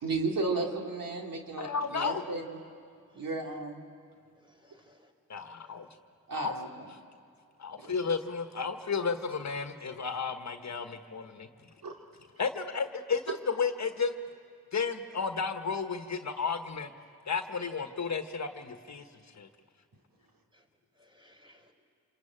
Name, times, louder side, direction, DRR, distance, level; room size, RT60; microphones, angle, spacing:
voice 1, 0.0-2.6 3.1-3.8 6.3-6.9 7.8-7.9 11.8-11.9 13.3-13.4, right 3 dB, 65° right, 1 dB, 3.0 m, -34 dB
voice 2, 1.6-2.2 5.3-5.9 6.3-6.5 7.6-11.5 12.4-14.1 14.7-16.9 17.3-19.0 19.3-19.5, left 5 dB, 50° left, 7 dB, 1.5 m, -33 dB
voice 3, 4.4-5.1 5.4-5.7 20.5-20.6 21.0-21.7, equal, 15° right, 3 dB, 4.3 m, -61 dB
27.5 x 21.5 x 8.9 m, 2.2 s
supercardioid pair, 50°, 36 cm